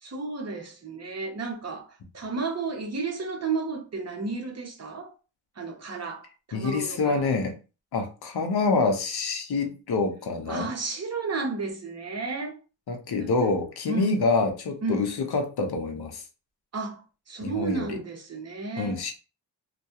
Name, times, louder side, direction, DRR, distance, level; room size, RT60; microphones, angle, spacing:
voice 1, 0.0-5.1 5.6-7.2 10.5-12.6 13.2-13.3 13.9-14.1 14.8-15.1 16.7-17.0 17.3-19.0, right 3 dB, 35° right, 0.8 m, -32 dB
voice 2, 6.5-7.5 7.9-10.7 12.9-16.2 17.4-18.0 18.8-19.1, left 3 dB, 60° left, 0.7 m, -26 dB
2.3 x 2.2 x 2.8 m
cardioid pair, 75°, 44 cm